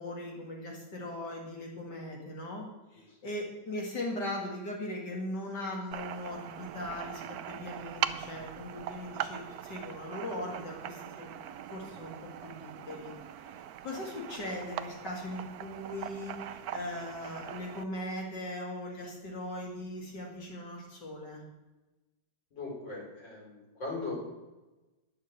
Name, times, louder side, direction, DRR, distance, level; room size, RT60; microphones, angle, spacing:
voice 1, 0.0-11.3 11.7-13.1 13.8-21.4, left 1 dB, 70° left, -1 dB, 2.9 m, -39 dB
sound 1, 5.9-17.8, right 10 dB, 70° right, 1.0 m, -41 dB
voice 2, 22.5-24.1, left 3 dB, 90° left, -4 dB, 5.3 m, -39 dB
11.0 x 6.9 x 7.9 m, 1.1 s
omnidirectional pair, 1.9 m